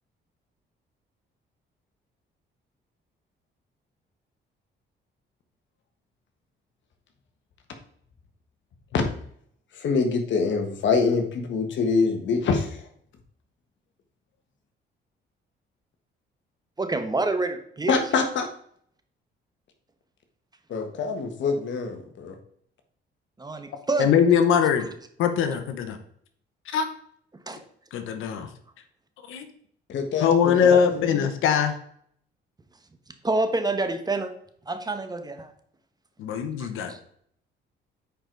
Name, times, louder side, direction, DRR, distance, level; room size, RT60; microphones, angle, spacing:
voice 1, 9.7-12.9 17.9-18.5 20.7-22.3 29.9-30.3 30.6-31.2, left 4 dB, 70° left, 5 dB, 1.6 m, -25 dB
voice 2, 16.8-17.9 23.4-24.1 27.5-27.6 33.2-34.3 34.7-35.5 36.6-37.0, right 2 dB, 20° right, 7 dB, 1.2 m, -27 dB
voice 3, 24.0-24.9 25.2-26.0 26.7-26.9 27.9-28.5 29.3-29.5 30.2-31.8 36.2-37.0, left 7 dB, 85° left, 8 dB, 1.0 m, -22 dB
9.3 x 4.8 x 4.0 m, 0.64 s
cardioid pair, 90°, 20 cm